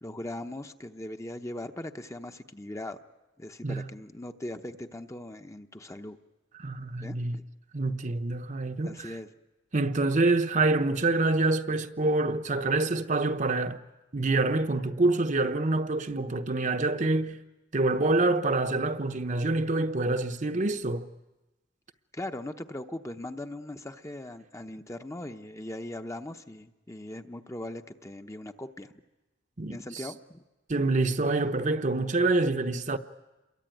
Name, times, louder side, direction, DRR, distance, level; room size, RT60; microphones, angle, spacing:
voice 1, 0.0-3.0 3.4-6.2 7.0-7.4 8.8-9.3 22.1-28.9 29.7-30.4, left 1 dB, 15° left, 0.9 m, -39 dB
voice 2, 6.6-7.4 7.7-9.1 9.7-13.8 14.1-17.4 17.7-21.1 29.6-29.8 30.7-33.0, right 2 dB, 40° right, 1.0 m, -26 dB
28.0 x 22.5 x 9.2 m
head